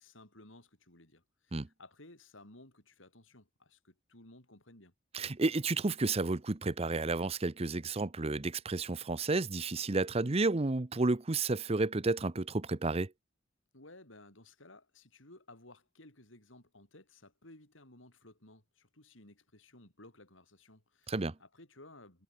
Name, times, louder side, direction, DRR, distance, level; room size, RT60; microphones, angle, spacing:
voice 1, 0.0-4.9 13.7-22.2, left 2 dB, 85° left, 6.9 m, -57 dB
voice 2, 5.1-13.1 21.1-21.3, right 3 dB, 30° right, 0.8 m, -31 dB
head